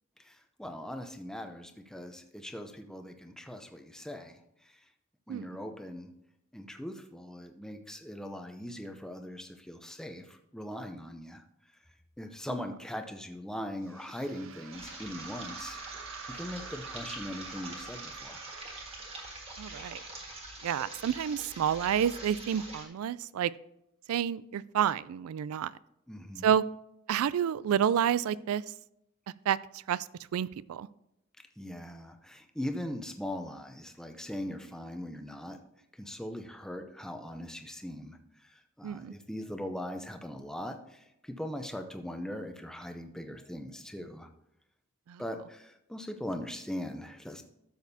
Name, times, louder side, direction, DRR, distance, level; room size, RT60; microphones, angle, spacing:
voice 1, 0.2-4.8 5.3-6.1 6.5-11.4 12.2-15.8 16.3-18.4 26.1-26.5 31.6-35.6 35.9-44.3 45.2-47.4, left 1 dB, 5° left, 6 dB, 0.6 m, -40 dB
sound 1, 13.8-21.1, right 5 dB, 60° right, 0.7 m, -48 dB
sound 2, 14.7-22.9, right 2 dB, 30° right, 1.6 m, -44 dB
voice 2, 19.6-20.0 20.6-23.5 24.1-25.7 26.4-26.6 27.1-28.6 29.5-29.6 29.9-30.0 30.3-30.9 38.8-39.1 45.1-45.2, right 9 dB, 85° right, 19 dB, 0.3 m, -29 dB
12.0 x 7.2 x 2.7 m, 0.82 s
head